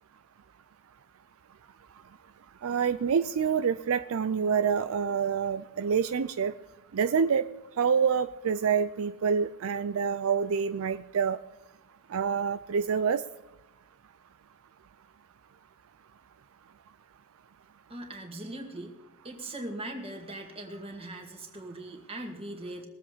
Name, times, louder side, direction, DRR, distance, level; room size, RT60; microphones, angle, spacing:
voice 1, 2.6-6.5 6.9-7.5 7.8-11.4 12.1-13.2, right 6 dB, 65° right, 11 dB, 0.4 m, -27 dB
voice 2, 17.9-18.9 19.2-22.9, right 1 dB, 25° right, 3 dB, 2.2 m, -40 dB
21.0 x 7.8 x 5.1 m, 1.1 s
head